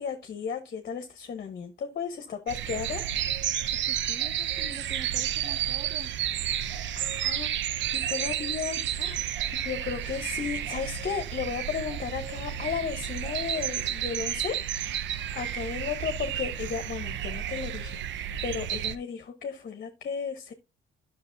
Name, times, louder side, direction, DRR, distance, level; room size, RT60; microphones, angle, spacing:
voice 1, 0.0-3.0 7.0-9.2 9.5-14.6 15.3-20.5, left 7 dB, 50° left, 0.9 m, -34 dB
sound 1, 2.5-19.0, right 10 dB, 70° right, 0.5 m, -31 dB
voice 2, 3.7-6.1, right 2 dB, 20° right, 0.7 m, -46 dB
10.5 x 6.3 x 2.6 m
cardioid pair, 90°, 20 cm